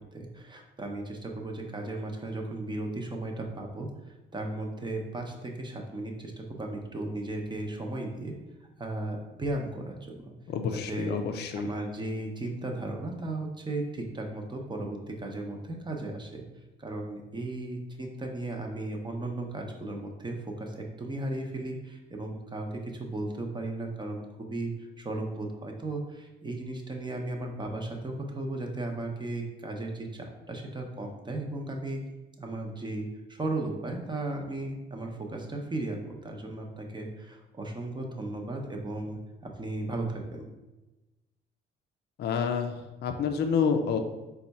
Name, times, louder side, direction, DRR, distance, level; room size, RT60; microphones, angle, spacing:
voice 1, 0.1-8.3 8.8-10.3 10.7-11.2 11.5-16.4 16.8-32.0 32.4-39.2 39.6-40.5, right 2 dB, 25° right, 2 dB, 0.8 m, -35 dB
voice 2, 10.5-11.7 42.2-44.0, left 6 dB, 55° left, 5 dB, 0.4 m, -28 dB
4.2 x 2.3 x 4.1 m, 1.1 s
cardioid pair, 90°, 20 cm